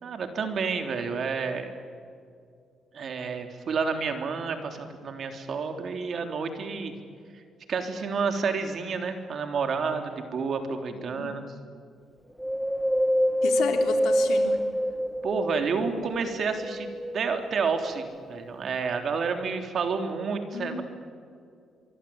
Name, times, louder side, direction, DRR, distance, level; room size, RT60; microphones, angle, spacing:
voice 1, 0.0-1.7 2.9-6.9 7.7-11.4 15.2-20.8, right 5 dB, 55° right, 6 dB, 3.5 m, -30 dB
voice 2, 10.9-11.5 13.4-14.6 20.5-20.8, left 6 dB, 80° left, 5 dB, 3.7 m, -33 dB
Wind, 12.4-16.0 16.5-17.7 18.3-18.4, equal, 5° right, 1.3 m, -26 dB
24.5 x 24.0 x 8.8 m, 2.3 s
cardioid pair, 90°, 0 cm